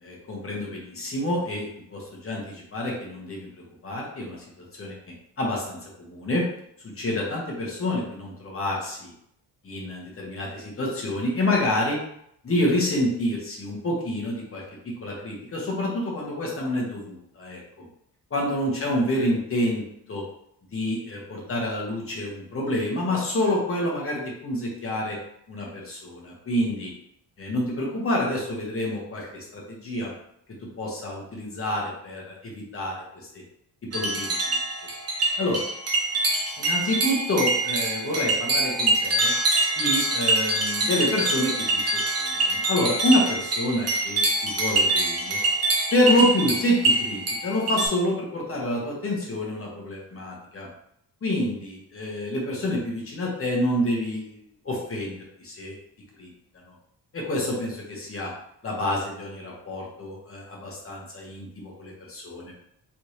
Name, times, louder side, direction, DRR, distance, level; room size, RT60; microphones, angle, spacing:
voice 1, 0.0-3.5 3.8-4.4 4.8-4.9 5.4-6.5 6.8-9.1 9.6-12.0 12.4-14.6 15.0-17.8 18.3-20.2 20.7-25.2 25.5-26.9 27.4-30.1 30.8-33.0 33.3-33.4 33.9-34.6 35.4-35.6 36.6-39.3 39.8-45.4 45.9-50.7 51.2-55.8 56.2-56.3 57.1-58.3 58.6-62.5, left 1 dB, 35° left, -2 dB, 1.1 m, -28 dB
sound 1, 33.9-47.9, right 2 dB, 40° right, 0.8 m, -25 dB
3.5 x 3.2 x 2.9 m, 0.73 s
wide cardioid pair, 145°, 39 cm